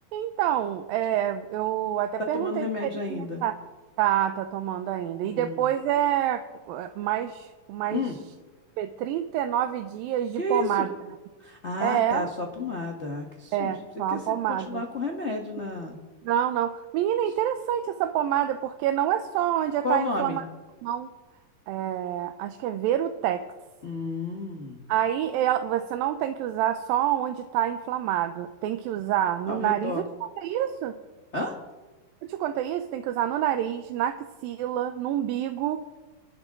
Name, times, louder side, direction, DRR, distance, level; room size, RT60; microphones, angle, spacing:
voice 1, 0.1-3.6 4.0-8.0 8.8-10.9 11.8-12.3 13.5-14.8 16.2-20.4 20.8-21.1 21.7-23.4 24.9-30.1 30.4-30.9 32.2-35.8, right 11 dB, 90° right, 8 dB, 2.5 m, -27 dB
voice 2, 2.2-3.4 5.2-5.7 7.9-8.1 10.4-10.8 11.4-13.7 14.1-14.2 14.7-16.0 19.8-20.4 23.8-24.8 29.5-30.0 31.3-31.5, left 2 dB, 80° left, 0 dB, 0.6 m, -31 dB
27.0 x 11.5 x 3.7 m, 1.2 s
omnidirectional pair, 4.0 m